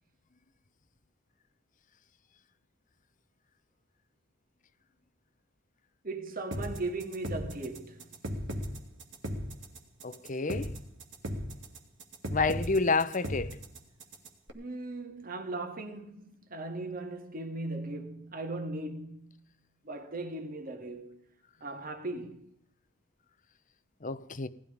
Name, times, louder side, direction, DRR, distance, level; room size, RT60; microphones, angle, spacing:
voice 1, 6.0-8.1 14.5-19.5 19.8-21.2 21.6-22.5, right 2 dB, 45° right, 2.2 m, -38 dB
sound 1, 6.5-14.5, equal, 60° right, 2.6 m, -37 dB
voice 2, 10.0-10.7 12.3-13.5 24.0-24.5, left 3 dB, 40° left, 0.8 m, -29 dB
18.5 x 12.5 x 5.2 m
head